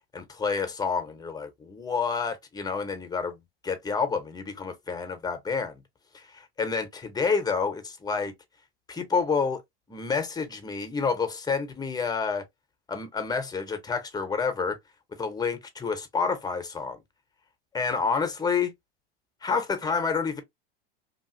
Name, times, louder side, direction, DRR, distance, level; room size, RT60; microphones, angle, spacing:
voice 1, 0.1-5.7 6.1-8.3 8.9-9.6 9.9-12.4 12.9-14.8 15.2-17.0 17.7-18.7 19.4-20.4, left 5 dB, 15° left, 0.9 m, -29 dB
2.8 x 2.6 x 2.6 m
hypercardioid pair, 95°, 30 cm